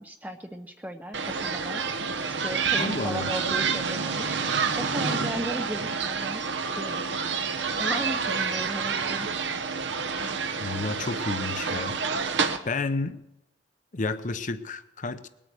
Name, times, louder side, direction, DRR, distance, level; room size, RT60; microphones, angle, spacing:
voice 1, 0.0-1.9 2.4-4.4 4.7-6.4 6.8-7.1 7.8-9.3, right 1 dB, 10° right, 5 dB, 0.7 m, -36 dB
sound 1, 1.1-12.6, right 5 dB, 70° right, 1.1 m, -28 dB
voice 2, 2.8-3.3 10.6-12.0 12.6-13.2 13.9-15.3, left 3 dB, 45° left, 11 dB, 0.8 m, -31 dB
20.0 x 8.9 x 6.7 m, 0.88 s
head